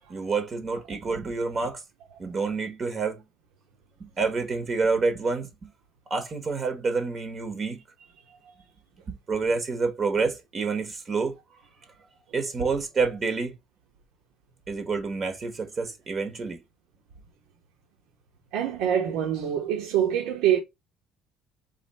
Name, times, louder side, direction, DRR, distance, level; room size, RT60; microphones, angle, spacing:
voice 1, 0.1-1.8 2.2-3.2 4.2-5.7 6.1-7.8 9.1-11.3 12.3-13.6 14.7-16.6, right 4 dB, 30° right, 1.0 m, -28 dB
voice 2, 18.5-20.6, right 10 dB, 85° right, 1.3 m, -25 dB
4.0 x 2.8 x 4.1 m
cardioid pair, 140°, 0 cm